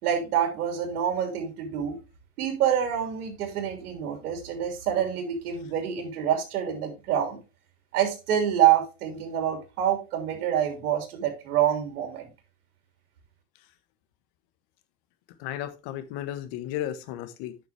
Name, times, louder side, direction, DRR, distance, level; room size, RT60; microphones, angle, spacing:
voice 1, 0.0-2.0 2.4-7.4 7.9-12.3, right 10 dB, 85° right, 3.1 m, -26 dB
voice 2, 15.4-17.6, left 12 dB, 60° left, 1.5 m, -34 dB
9.2 x 5.9 x 3.4 m
supercardioid pair, 125°, 44 cm